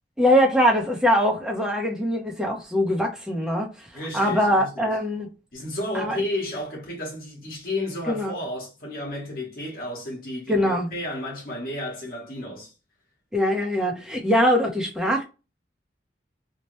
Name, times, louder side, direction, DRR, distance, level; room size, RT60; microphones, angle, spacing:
voice 1, 0.2-3.9 4.1-5.3 5.9-6.2 8.1-8.3 10.5-10.9 13.3-15.2, equal, 5° right, 0.7 m, -22 dB
voice 2, 3.9-4.9 5.5-12.7, left 1 dB, 50° left, 1.1 m, -32 dB
3.0 x 2.1 x 2.9 m
head